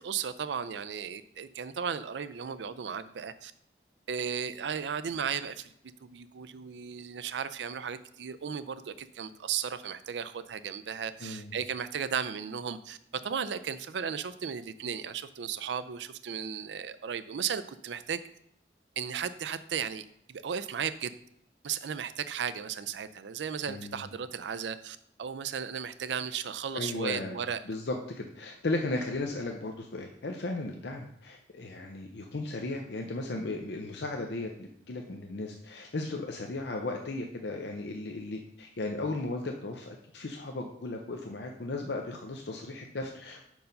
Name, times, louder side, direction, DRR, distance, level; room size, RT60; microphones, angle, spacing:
voice 1, 0.0-3.5 4.1-5.7 6.0-13.0 13.2-18.2 19.0-21.1 21.6-27.6, right 7 dB, 90° right, 13 dB, 0.4 m, -35 dB
voice 2, 23.7-24.1 26.7-27.4 27.7-43.4, left 2 dB, 80° left, 2 dB, 0.6 m, -36 dB
5.4 x 4.6 x 5.2 m, 0.70 s
head